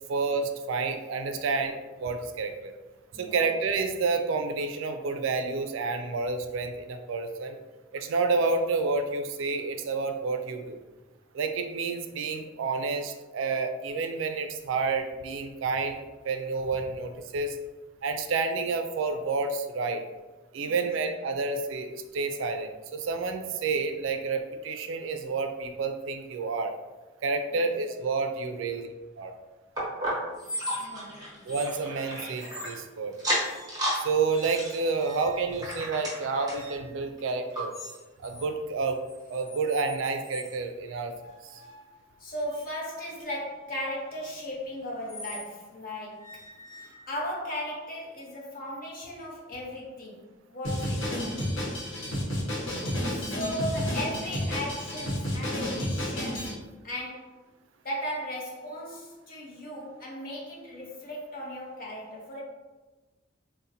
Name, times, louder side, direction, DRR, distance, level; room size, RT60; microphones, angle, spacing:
voice 1, 0.1-2.7 3.1-7.6 7.9-10.8 11.3-17.6 18.0-20.0 20.5-26.7 27.2-28.9 29.2-29.3 31.5-33.2 34.0-37.8 38.2-39.0 39.3-41.1 41.5-41.6 52.7-53.1, right 4 dB, 80° right, 7 dB, 0.3 m, -29 dB
sound 1, 29.8-32.7 33.1-34.0 34.3-36.7 37.2-37.3 37.5-37.6 38.3-38.4, equal, 20° right, 0.9 m, -33 dB
sound 2, 30.3-31.1 31.4-31.8 32.3-32.8 33.4-33.9 34.2-35.6 36.5-36.9 37.7-38.5 38.8-40.6 41.2-45.5 46.2-47.4, left 1 dB, 15° left, 0.9 m, -44 dB
voice 2, 30.8-31.2 42.2-46.4 46.8-50.2 50.5-51.3 53.1-56.6 56.8-57.3 57.8-62.4, equal, 45° left, -3 dB, 0.7 m, -36 dB
Drum kit, 50.6-56.5, equal, 90° left, 1.0 m, -31 dB
3.8 x 2.1 x 2.7 m, 1.2 s
head